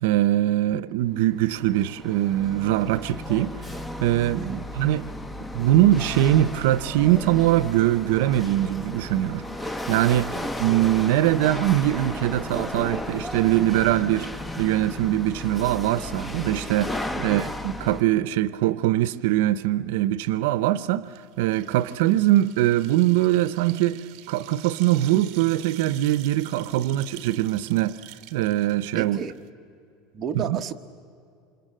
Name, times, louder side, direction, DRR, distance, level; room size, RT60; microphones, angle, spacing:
voice 1, 0.0-3.7 4.0-5.0 5.5-14.3 14.6-21.1 21.4-28.0 28.3-29.2 30.4-30.6, right 14 dB, 75° right, 0.7 m, -22 dB
Chatter / Hiss / Rattle, 1.1-18.0, left 1 dB, 5° left, 0.7 m, -34 dB
voice 2, 17.1-17.4 28.9-29.3 30.1-30.7, right 7 dB, 25° right, 1.2 m, -33 dB
sound 1, 21.1-29.5, right 14 dB, 50° right, 1.4 m, -46 dB
28.0 x 26.5 x 7.6 m
supercardioid pair, 155°, 0 cm